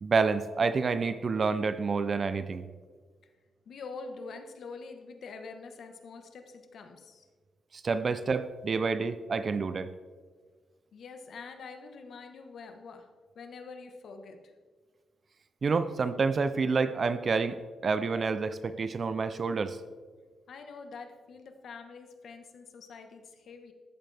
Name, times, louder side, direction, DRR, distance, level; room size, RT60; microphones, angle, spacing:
voice 1, 0.0-2.6 7.7-9.9 15.6-17.6 17.8-19.8, right 4 dB, 40° right, 12 dB, 0.5 m, -28 dB
voice 2, 3.7-7.3 10.9-13.1 13.3-14.5 20.5-23.7, left 4 dB, 60° left, 6 dB, 1.3 m, -45 dB
14.5 x 12.0 x 3.5 m, 1.5 s
wide cardioid pair, 145°, 0 cm